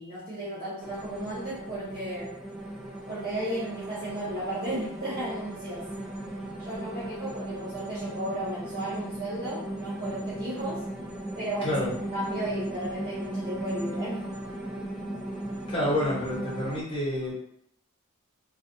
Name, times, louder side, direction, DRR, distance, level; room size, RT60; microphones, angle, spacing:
voice 1, 0.0-2.3 3.1-5.9 6.6-10.8 11.3-11.8 12.1-14.2, right 1 dB, 45° right, -11 dB, 0.8 m, -34 dB
sound 1, 0.8-16.8, right 1 dB, 5° right, 0.4 m, -37 dB
voice 2, 15.7-17.3, left 1 dB, 25° left, -7 dB, 0.9 m, -28 dB
2.4 x 2.3 x 2.5 m, 0.72 s
head